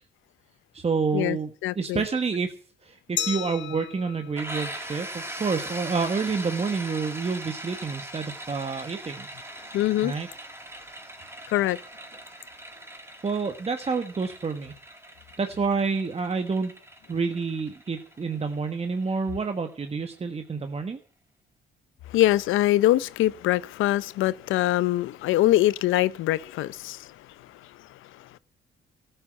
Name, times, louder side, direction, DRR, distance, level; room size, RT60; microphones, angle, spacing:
voice 1, 0.7-1.5 1.8-2.6 2.8-9.3 9.7-9.8 10.0-10.3 13.2-14.7 15.4-16.7 17.1-21.0, right 4 dB, 30° right, 1.4 m, -28 dB
voice 2, 1.6-2.0 9.7-10.1 11.5-11.8 22.1-28.4, left 15 dB, 90° left, 0.6 m, -24 dB
Glass, 3.2-5.9, left 11 dB, 65° left, 1.0 m, -36 dB
sound 1, 4.4-19.9, right 1 dB, 10° right, 4.2 m, -40 dB
13.5 x 8.2 x 7.7 m
cardioid pair, 90°, 20 cm